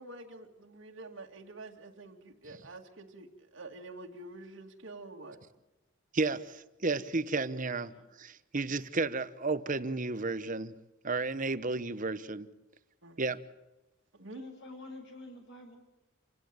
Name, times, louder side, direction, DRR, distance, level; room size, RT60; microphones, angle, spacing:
voice 1, 0.0-5.4 13.0-13.2 14.1-14.4, right 2 dB, 70° right, 2.3 m, -47 dB
voice 2, 6.1-7.9 8.2-10.7 11.0-12.5 13.2-13.4, right 3 dB, 40° right, 1.0 m, -32 dB
voice 3, 14.3-15.8, left 2 dB, 60° left, 6.8 m, -47 dB
27.5 x 16.0 x 9.0 m
head